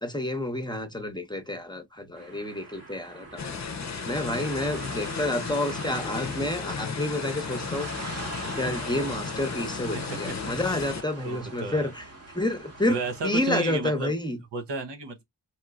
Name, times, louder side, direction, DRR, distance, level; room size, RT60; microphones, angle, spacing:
voice 1, 0.0-3.6 4.1-7.9 8.6-12.0 12.3-14.4, left 1 dB, 10° left, 0.7 m, -29 dB
sound 1, 2.1-13.5, right 3 dB, 35° right, 0.9 m, -41 dB
sound 2, 3.4-11.0, left 6 dB, 45° left, 0.5 m, -34 dB
voice 2, 11.2-11.9 12.9-14.1 14.5-15.2, right 3 dB, 85° right, 0.9 m, -33 dB
3.0 x 2.9 x 2.4 m
cardioid pair, 55°, 41 cm